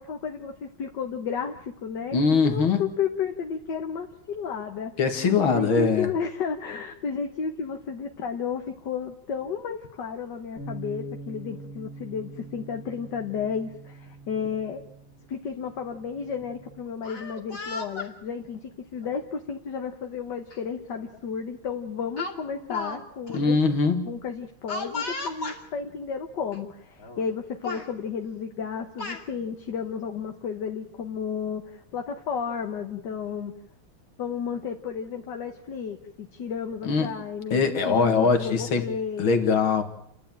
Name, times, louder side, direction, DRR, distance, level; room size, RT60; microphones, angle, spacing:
voice 1, 0.0-2.2 2.4-14.8 15.3-18.6 18.9-23.6 24.1-33.5 34.2-39.4, left 6 dB, 60° left, 1.8 m, -32 dB
voice 2, 2.1-2.8 5.0-6.1 23.3-24.2 36.8-37.1 37.5-38.9 39.2-39.8, left 5 dB, 75° left, 2.7 m, -22 dB
Bass guitar, 10.6-16.8, right 2 dB, 75° right, 7.5 m, -43 dB
Speech, 16.9-18.1 19.0-19.2 20.5-20.6 21.0-21.2 22.2-23.0 23.3-23.4 24.7-25.6 26.5-26.6 27.0-27.3 27.6-27.9 28.7-29.2, left 3 dB, 40° left, 2.9 m, -35 dB
29.5 x 11.5 x 8.9 m
omnidirectional pair, 2.2 m